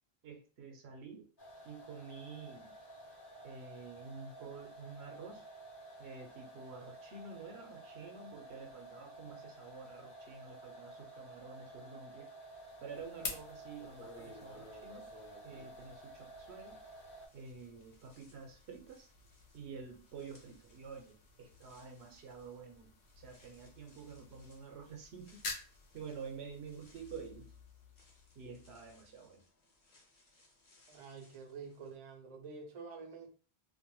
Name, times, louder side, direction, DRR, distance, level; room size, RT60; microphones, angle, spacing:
voice 1, 0.2-1.3 1.6-2.7 3.4-5.5 6.0-12.3 12.8-15.1 15.4-16.8 17.3-19.1 19.5-25.4 25.9-27.5 28.4-29.4, right 5 dB, 85° right, 3 dB, 0.9 m, -49 dB
sound 1, 1.4-17.3, right 1 dB, 30° left, 0.6 m, -53 dB
sound 2, 12.4-29.3, left 3 dB, 80° left, 0.9 m, -51 dB
sound 3, 13.8-16.9 17.2-31.9, left 1 dB, 55° left, 0.9 m, -62 dB
voice 2, 30.9-33.3, right 5 dB, 45° right, 3 dB, 0.5 m, -48 dB
2.4 x 2.1 x 3.0 m, 0.38 s
omnidirectional pair, 1.1 m